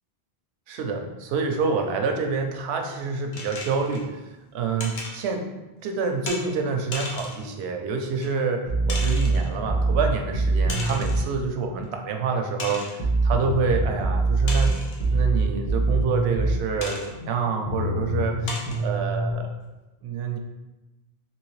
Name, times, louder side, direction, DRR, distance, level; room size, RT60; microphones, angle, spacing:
voice 1, 0.7-4.2 4.5-5.5 5.8-14.7 15.1-19.5 20.0-20.4, right 4 dB, 80° right, 3 dB, 0.8 m, -27 dB
sound 1, 3.3-4.1 4.8-5.2 6.3-6.4 6.9-7.5 8.2-8.3 8.9-9.5 10.7-11.3 11.8-11.9 12.6-13.0 14.5-15.1 16.8-17.1 17.8-17.9 18.5-18.8, left 2 dB, 70° left, 1.0 m, -35 dB
sound 2, 8.7-11.3 13.0-16.6 17.7-19.3, right 3 dB, 15° left, 1.0 m, -23 dB
3.8 x 2.9 x 3.1 m, 1.0 s
omnidirectional pair, 1.1 m